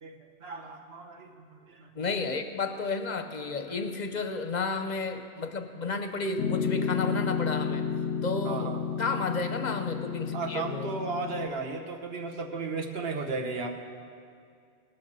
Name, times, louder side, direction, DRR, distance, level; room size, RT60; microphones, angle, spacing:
voice 1, 0.0-1.9 3.1-3.9 8.4-8.8 10.3-13.7, right 4 dB, 60° right, 4 dB, 1.3 m, -35 dB
voice 2, 1.9-7.9 8.2-8.7 9.0-10.9, left 4 dB, 45° left, 7 dB, 0.7 m, -32 dB
Piano, 6.4-11.5, left 6 dB, 90° left, 0.9 m, -31 dB
19.0 x 6.4 x 6.7 m, 2.2 s
omnidirectional pair, 1.2 m